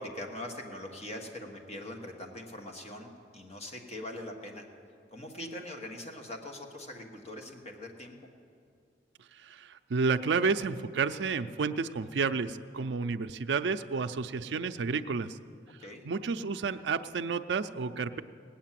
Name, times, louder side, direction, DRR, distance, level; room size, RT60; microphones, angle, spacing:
voice 1, 0.0-4.7 5.1-8.2 15.8-16.1, left 1 dB, 35° left, 2 dB, 1.5 m, -42 dB
voice 2, 9.3-15.4 16.0-18.2, right 4 dB, 70° right, 9 dB, 0.5 m, -31 dB
18.0 x 8.8 x 7.5 m, 2.3 s
head